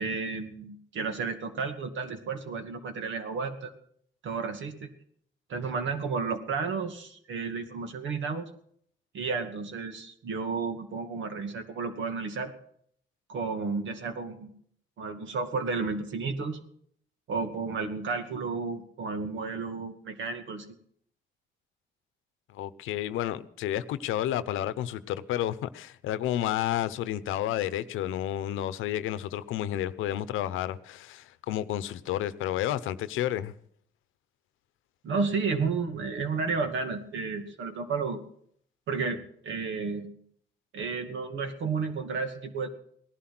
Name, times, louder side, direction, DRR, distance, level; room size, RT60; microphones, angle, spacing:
voice 1, 0.0-3.7 4.2-4.9 5.5-8.5 9.1-12.5 13.3-14.5 15.0-16.6 17.3-20.7 35.0-38.2 38.9-40.1 40.7-42.7, right 4 dB, 70° right, 6 dB, 2.3 m, -32 dB
voice 2, 22.5-33.5, left 12 dB, 90° left, 15 dB, 0.8 m, -31 dB
18.0 x 11.5 x 6.1 m, 0.64 s
cardioid pair, 90°, 20 cm